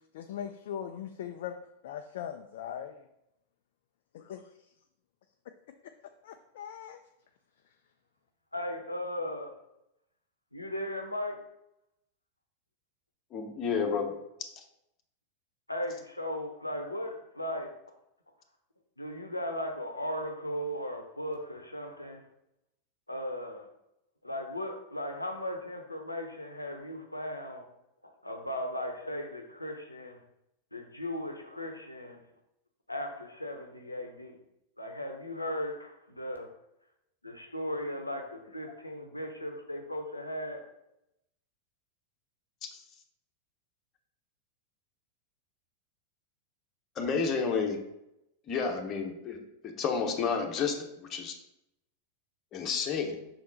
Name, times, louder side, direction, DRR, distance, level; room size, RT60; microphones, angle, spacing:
voice 1, 0.1-1.6 1.8-3.1 4.3-4.4 6.2-7.0, left 9 dB, 55° left, 7 dB, 0.4 m, -39 dB
voice 2, 8.5-9.5 10.5-11.4 15.7-17.7 19.0-22.2 23.1-23.7 24.2-27.7 28.2-30.2 30.7-32.2 32.9-34.4 34.8-36.5 37.2-40.6, left 1 dB, 85° left, 4 dB, 0.8 m, -37 dB
voice 3, 13.3-14.2 14.6-14.7 42.6-42.7 47.0-47.8 48.5-49.4 49.6-51.3 52.5-53.3, left 5 dB, 30° left, 3 dB, 1.0 m, -31 dB
6.0 x 4.2 x 4.0 m, 0.84 s
figure-of-eight pair, 90°, 0 cm